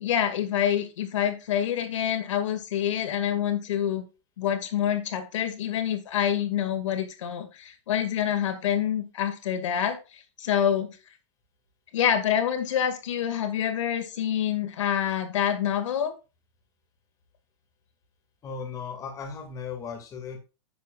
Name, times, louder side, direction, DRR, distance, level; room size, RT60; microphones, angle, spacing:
voice 1, 0.0-4.0 4.4-11.0 11.9-16.1, left 9 dB, 80° left, 8 dB, 2.3 m, -27 dB
voice 2, 18.4-20.4, left 6 dB, 20° left, 4 dB, 2.4 m, -36 dB
10.5 x 8.0 x 2.5 m, 0.30 s
supercardioid pair, 155°, 16 cm